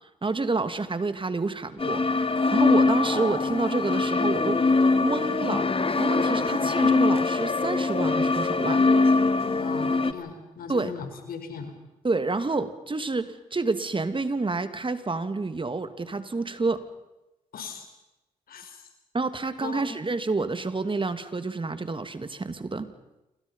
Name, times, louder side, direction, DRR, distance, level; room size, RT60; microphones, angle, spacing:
voice 1, 0.2-4.6 5.0-8.9 10.7-10.9 12.0-16.8 19.1-22.9, right 3 dB, 35° right, 10 dB, 2.5 m, -29 dB
sound 1, 1.8-10.1, left 3 dB, 35° left, 2.1 m, -23 dB
voice 2, 9.5-11.7 17.5-17.9 18.5-18.8 19.6-20.0, left 6 dB, 70° left, 6 dB, 4.9 m, -38 dB
28.0 x 24.5 x 5.7 m, 0.98 s
supercardioid pair, 45°, 16 cm